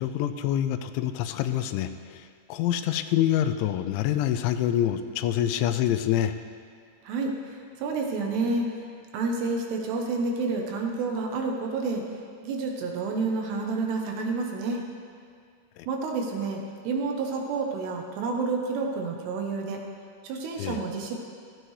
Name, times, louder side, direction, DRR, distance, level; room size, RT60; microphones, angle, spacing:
voice 1, 0.0-6.4 15.8-15.9 20.6-20.8, left 11 dB, 85° left, 10 dB, 2.9 m, -26 dB
voice 2, 7.0-8.7 9.1-12.0 12.4-14.8 15.9-19.8 20.2-21.1, right 3 dB, 75° right, 1 dB, 2.9 m, -29 dB
15.5 x 14.5 x 3.2 m, 2.2 s
omnidirectional pair, 5.3 m